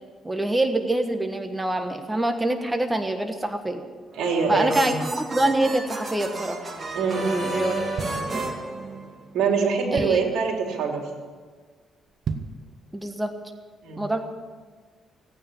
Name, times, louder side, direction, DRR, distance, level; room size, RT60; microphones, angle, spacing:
voice 1, 0.2-3.8 4.5-4.9 5.3-6.6 7.2-7.7 9.9-10.2 12.9-13.3 14.0-14.2, right 1 dB, 10° right, 6 dB, 1.4 m, -25 dB
sound 1, 4.1-9.5, right 2 dB, 35° right, 2.3 m, -32 dB
voice 2, 4.1-4.9 6.9-7.3 9.3-11.0 13.8-14.0, right 5 dB, 85° right, 1 dB, 3.2 m, -24 dB
sound 2, 7.9-8.9 9.4-9.5 9.7-10.4 10.9-11.2 11.4-11.5 12.1-12.7 13.1-13.2, right 6 dB, 60° right, 1.2 m, -33 dB
17.0 x 9.4 x 8.6 m, 1.5 s
cardioid pair, 90°, 0 cm